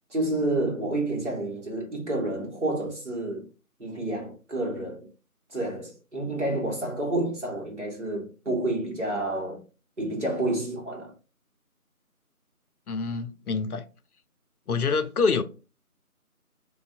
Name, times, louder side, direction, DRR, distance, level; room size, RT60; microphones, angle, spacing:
voice 1, 0.1-3.5 3.8-5.1 5.5-9.6 10.0-11.1, right 1 dB, 50° right, 1.4 m, -29 dB
voice 2, 12.9-13.9 14.7-15.4, left 4 dB, 80° left, 0.6 m, -26 dB
3.9 x 2.5 x 2.4 m
figure-of-eight pair, 175°, 44 cm